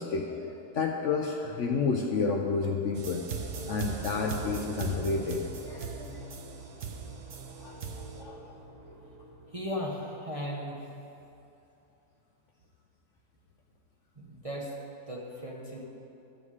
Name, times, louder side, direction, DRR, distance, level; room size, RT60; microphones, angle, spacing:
voice 1, 0.0-3.2 3.7-6.2 7.6-8.4, left 4 dB, 60° left, 1 dB, 0.8 m, -31 dB
sound 1, 3.0-8.2, right 6 dB, 55° right, 1.1 m, -39 dB
sound 2, 3.5-9.8, right 2 dB, 80° right, 2.9 m, -45 dB
voice 2, 9.5-10.8 14.2-14.7 15.1-15.8, equal, 25° right, -3 dB, 0.8 m, -36 dB
13.0 x 7.2 x 4.8 m, 2.8 s
omnidirectional pair, 1.7 m